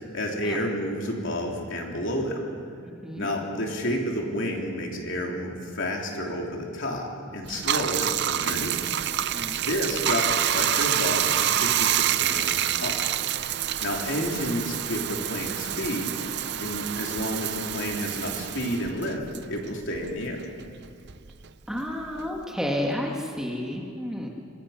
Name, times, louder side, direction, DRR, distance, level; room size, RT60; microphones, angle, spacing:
voice 1, 0.1-2.4 3.2-8.8 9.6-13.0 13.8-16.1 16.6-19.2 19.5-20.4, equal, 55° left, 0 dB, 3.2 m, -30 dB
voice 2, 2.8-3.3 9.3-9.6 10.0-10.1 14.1-14.4 21.7-24.3, left 1 dB, 5° right, -1 dB, 1.8 m, -31 dB
Bathtub (filling or washing), 7.5-20.3 20.6-22.4, right 10 dB, 50° right, 0.6 m, -27 dB
25.0 x 21.5 x 5.8 m, 2.3 s
head